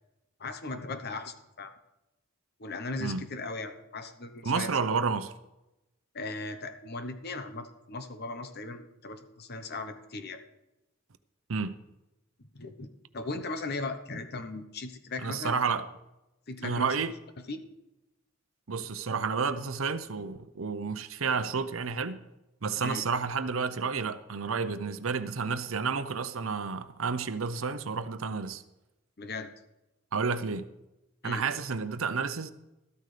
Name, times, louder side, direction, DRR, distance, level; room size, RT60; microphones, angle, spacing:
voice 1, 0.4-1.7 2.6-4.7 6.1-10.4 12.4-15.6 16.5-16.9 17.5-17.6 22.8-23.0 29.2-29.5 31.2-31.4, left 3 dB, 55° left, 1.0 m, -38 dB
voice 2, 4.4-5.3 11.5-11.7 15.2-15.8 16.6-17.1 18.7-22.2 22.6-28.6 30.1-30.7 31.2-32.5, right 5 dB, 85° right, 0.7 m, -30 dB
13.5 x 13.0 x 3.3 m
head